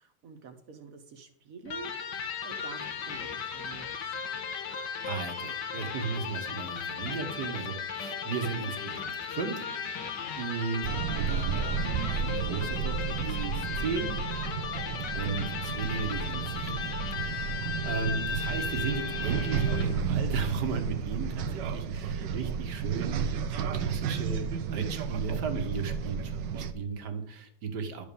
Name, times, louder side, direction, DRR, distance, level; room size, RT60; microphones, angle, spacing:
voice 1, 0.0-4.2, right 5 dB, 55° right, 7 dB, 1.6 m, -48 dB
Electric guitar, 1.7-20.0, left 6 dB, 85° left, 1.9 m, -36 dB
voice 2, 4.7-9.6 10.4-14.2 15.1-24.4 24.7-28.0, right 5 dB, 70° right, 7 dB, 1.9 m, -35 dB
sound 1, 10.8-26.7, right 6 dB, 90° right, 1.4 m, -32 dB
12.0 x 5.2 x 6.9 m, 0.72 s
omnidirectional pair, 1.9 m